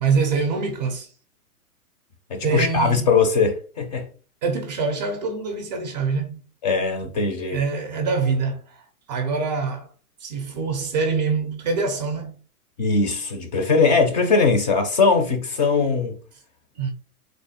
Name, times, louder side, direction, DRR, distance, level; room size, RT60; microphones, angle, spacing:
voice 1, 0.0-1.1 2.4-3.1 4.4-6.4 7.5-9.9 10.2-12.4 16.8-16.9, right 4 dB, 30° right, 0.5 m, -25 dB
voice 2, 2.3-4.0 6.6-7.6 12.8-16.1, left 4 dB, 30° left, 0.5 m, -20 dB
3.5 x 2.1 x 4.0 m
hypercardioid pair, 140°, 46 cm